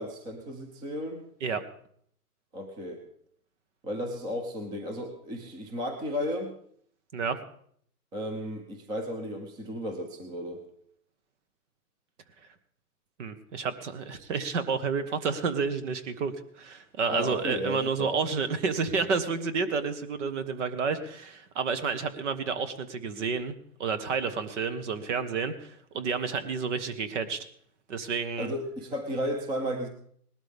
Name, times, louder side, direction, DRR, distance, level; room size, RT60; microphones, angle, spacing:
voice 1, 0.0-1.2 2.5-3.0 3.8-6.5 8.1-10.6 17.1-18.1 28.4-29.9, equal, 10° right, 5 dB, 0.8 m, -34 dB
voice 2, 13.2-23.5 23.8-27.5 27.9-28.5, right 5 dB, 50° right, 11 dB, 1.5 m, -30 dB
19.5 x 12.5 x 3.6 m, 0.63 s
hypercardioid pair, 155°, 46 cm